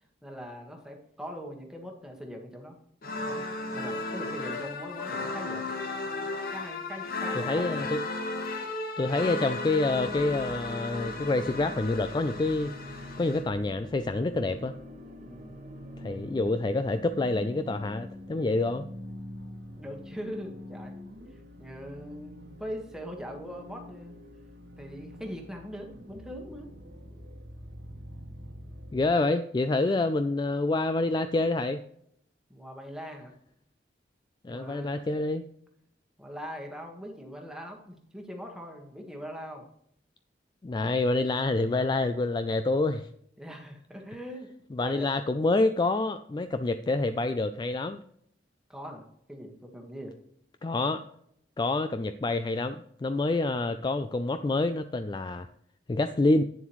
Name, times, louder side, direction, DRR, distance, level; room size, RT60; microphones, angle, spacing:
voice 1, 0.2-2.8 3.3-3.4 3.7-5.7 6.5-7.9 15.2-15.6 19.8-20.9 21.3-24.2 24.8-26.7 32.5-33.3 34.5-35.0 36.2-39.6 43.4-44.5 44.8-45.1 48.7-50.1, equal, 5° right, 1 dB, 1.4 m, -41 dB
sound 1, 3.0-13.4, left 3 dB, 55° left, 1.2 m, -35 dB
voice 2, 7.4-8.0 9.0-12.7 13.2-14.7 16.0-18.9 28.9-31.8 34.4-35.4 40.6-43.1 44.7-48.0 50.6-51.0 51.6-55.5 55.9-56.4, left 2 dB, 25° left, 10 dB, 0.3 m, -27 dB
sound 2, 9.9-29.1, left 1 dB, 90° right, 1.4 m, -45 dB
sound 3, 10.0-16.4, equal, 40° right, 1.1 m, -50 dB
9.2 x 7.3 x 3.1 m, 0.71 s
head